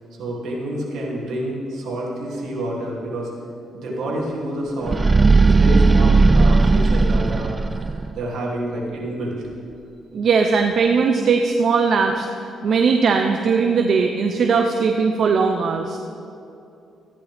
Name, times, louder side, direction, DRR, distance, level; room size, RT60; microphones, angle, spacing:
voice 1, 0.2-3.3 3.7-5.0 5.4-9.4, right 1 dB, 75° right, -4 dB, 2.8 m, -28 dB
sound 1, 4.8-8.1, right 3 dB, 25° right, 0.3 m, -15 dB
voice 2, 10.1-12.3 12.6-16.0, right 5 dB, 60° right, 4 dB, 0.7 m, -19 dB
14.0 x 10.5 x 3.5 m, 2.7 s
cardioid pair, 90°, 0 cm